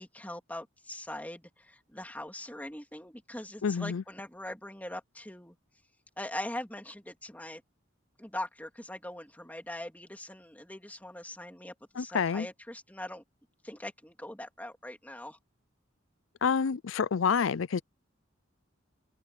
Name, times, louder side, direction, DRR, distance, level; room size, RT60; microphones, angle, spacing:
voice 1, 0.0-5.5 6.2-7.6 8.2-13.2 13.6-15.4, left 1 dB, 10° left, 3.4 m, -41 dB
voice 2, 3.6-4.0 12.0-12.5 16.4-17.8, left 6 dB, 85° left, 0.5 m, -28 dB
head